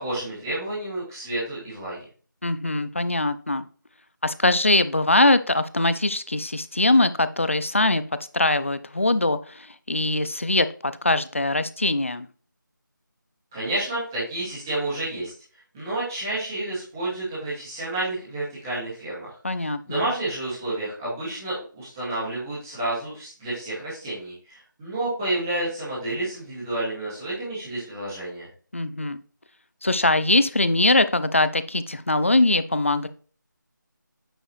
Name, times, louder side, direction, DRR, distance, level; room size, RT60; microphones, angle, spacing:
voice 1, 0.0-2.0 13.5-15.3 15.7-28.5, right 2 dB, 10° right, -10 dB, 2.0 m, -30 dB
voice 2, 2.4-3.7 4.2-8.0 8.3-12.3 19.4-20.1 28.7-29.2 29.8-33.1, left 2 dB, 40° left, 13 dB, 0.4 m, -22 dB
8.8 x 4.6 x 3.2 m, 0.40 s
figure-of-eight pair, 175°, 11 cm